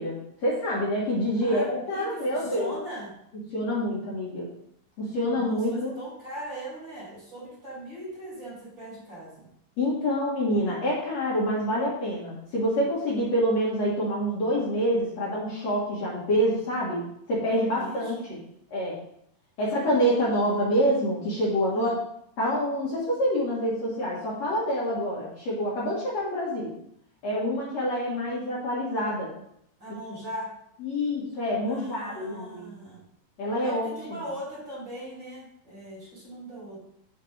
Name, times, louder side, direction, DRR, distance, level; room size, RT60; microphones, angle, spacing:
voice 1, 0.0-2.7 3.5-4.5 5.0-5.9 9.8-17.0 17.3-18.2 18.7-19.0 19.6-21.9 22.4-26.7 27.2-29.3 30.8-32.7 33.4-34.2, equal, 55° left, -6 dB, 2.6 m, -26 dB
voice 2, 1.4-3.1 5.3-9.5 17.5-18.4 19.6-20.3 21.7-22.0 29.8-30.5 31.7-33.0 33.6-36.8, right 1 dB, 35° right, -6 dB, 3.0 m, -40 dB
7.1 x 6.8 x 3.4 m, 0.73 s
omnidirectional pair, 4.0 m